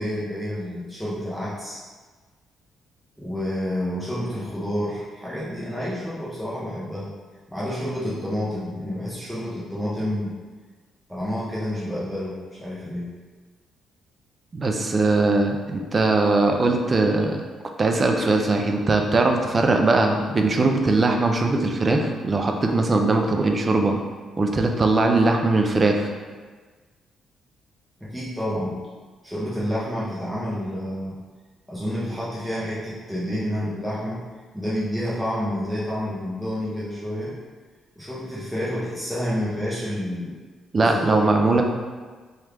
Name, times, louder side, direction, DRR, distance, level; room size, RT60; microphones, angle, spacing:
voice 1, 0.0-1.8 3.2-7.1 7.5-10.3 11.1-13.1 28.0-28.8 29.2-31.2 31.7-34.2 34.5-37.4 38.0-40.4 40.8-41.3, equal, ahead, -9 dB, 0.7 m, -29 dB
voice 2, 14.5-17.4 17.8-24.0 24.4-26.1 40.7-41.6, right 3 dB, 35° right, 3 dB, 0.4 m, -20 dB
3.1 x 2.4 x 3.3 m, 1.4 s
cardioid pair, 90°, 0 cm